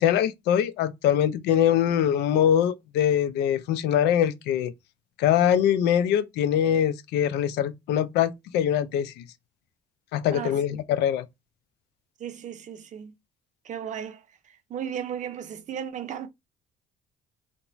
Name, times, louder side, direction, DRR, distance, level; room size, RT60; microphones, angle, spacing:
voice 1, 0.0-4.7 5.2-9.2 10.1-11.3, left 10 dB, 80° left, 0.4 m, -23 dB
voice 2, 12.2-13.2 13.6-16.3, right 9 dB, 45° right, 0.5 m, -35 dB
2.4 x 2.1 x 3.0 m
cardioid pair, 110°, 17 cm